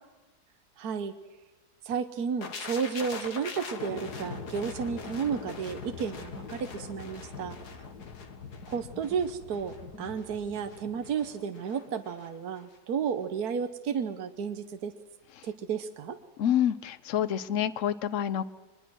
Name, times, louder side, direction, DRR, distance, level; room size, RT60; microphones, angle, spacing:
voice 1, 0.8-1.1 1.8-7.6 8.7-14.9 15.4-16.2, right 6 dB, 75° right, 9 dB, 1.5 m, -32 dB
sound 1, 2.4-12.3 12.6-12.8, left 5 dB, 80° left, 2.2 m, -42 dB
voice 2, 16.4-18.4, left 10 dB, 55° left, 14 dB, 1.1 m, -27 dB
23.5 x 21.0 x 6.3 m, 1.2 s
omnidirectional pair, 1.7 m